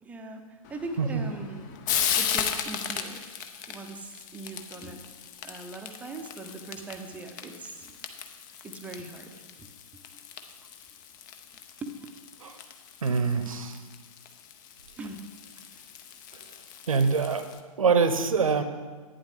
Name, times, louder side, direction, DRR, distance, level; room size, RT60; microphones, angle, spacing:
voice 1, 0.0-1.8 2.1-3.4 3.7-5.0 5.4-7.9 8.6-9.3 9.6-9.7 10.1-10.2 11.8-11.9 15.0-15.3 15.8-15.9, right 2 dB, 5° right, 5 dB, 0.6 m, -40 dB
Frying (food), 0.6-17.6, left 8 dB, 30° left, 0.6 m, -37 dB
voice 2, 13.0-13.8 16.9-17.4 17.8-18.6, right 5 dB, 65° right, 10 dB, 0.8 m, -24 dB
11.0 x 8.8 x 3.6 m, 1.4 s
figure-of-eight pair, 115°, 19 cm